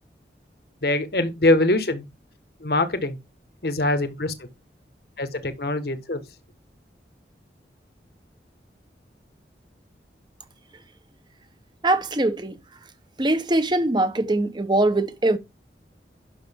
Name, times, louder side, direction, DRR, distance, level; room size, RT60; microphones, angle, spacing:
voice 1, 0.8-2.0 2.6-3.2 3.6-4.5 5.2-6.2, left 2 dB, 60° left, 1.4 m, -23 dB
voice 2, 11.8-12.6 13.2-15.4, right 2 dB, 25° right, 1.0 m, -22 dB
10.5 x 6.5 x 3.6 m
head